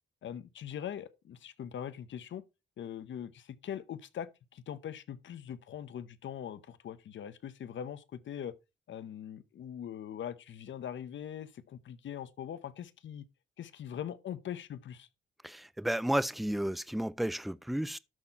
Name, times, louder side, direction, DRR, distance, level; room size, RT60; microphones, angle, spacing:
voice 1, 0.2-2.4 2.8-8.5 8.9-13.3 13.6-15.1, left 9 dB, 75° left, 0.9 m, -42 dB
voice 2, 15.4-18.0, right 1 dB, ahead, 0.4 m, -32 dB
12.5 x 4.4 x 4.2 m
cardioid pair, 115°, 20 cm